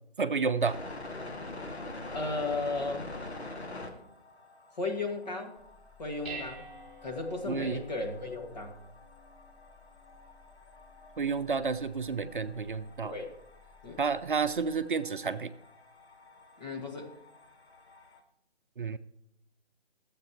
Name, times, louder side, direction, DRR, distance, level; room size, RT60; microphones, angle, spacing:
voice 1, 0.2-0.8 7.5-7.8 11.2-13.1 14.0-15.5 18.8-19.0, right 5 dB, 50° right, 9 dB, 0.6 m, -30 dB
sound 1, 0.6-18.2, left 2 dB, 80° left, 2.4 m, -47 dB
voice 2, 2.1-3.2 4.8-5.5 6.0-6.7 7.0-8.8 13.0-13.3 13.8-14.0 16.6-17.1, left 3 dB, 40° left, 1 dB, 2.2 m, -35 dB
Dishes pots and pans, 5.6-14.8, right 2 dB, ahead, 2.7 m, -51 dB
23.5 x 8.1 x 3.1 m, 0.82 s
figure-of-eight pair, 160°, 32 cm